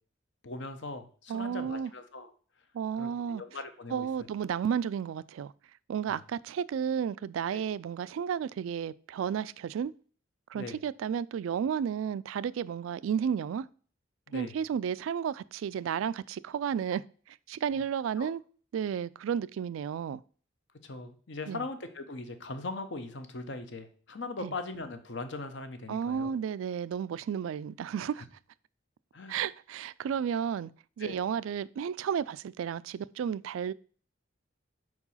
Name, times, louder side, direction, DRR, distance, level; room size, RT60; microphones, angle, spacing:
voice 1, 0.4-2.3 3.0-4.1 6.1-6.2 7.5-7.6 10.5-10.8 14.3-14.5 18.2-18.3 20.8-26.3 29.1-29.4 31.0-31.2, left 3 dB, 65° left, 0.9 m, -40 dB
voice 2, 1.3-1.9 2.7-3.4 3.9-5.5 5.9-9.9 10.5-13.7 14.3-18.4 18.7-20.2 21.5-21.6 24.4-24.5 25.9-28.3 29.3-30.7 31.0-33.7, right 8 dB, 85° right, 0.3 m, -32 dB
4.7 x 4.7 x 5.5 m
head